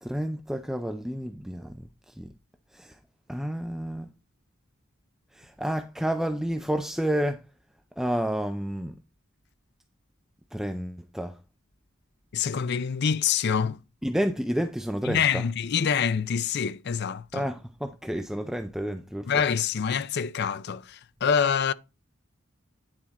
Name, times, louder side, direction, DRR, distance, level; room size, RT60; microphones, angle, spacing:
voice 1, 0.0-2.3 2.7-3.0 3.3-4.1 5.3-7.5 8.0-8.9 10.5-11.4 14.0-15.5 17.3-19.3, equal, ahead, 0.4 m, -30 dB
voice 2, 12.3-13.8 15.1-17.5 19.3-21.7, left 7 dB, 50° left, 0.5 m, -26 dB
9.9 x 4.3 x 4.2 m
head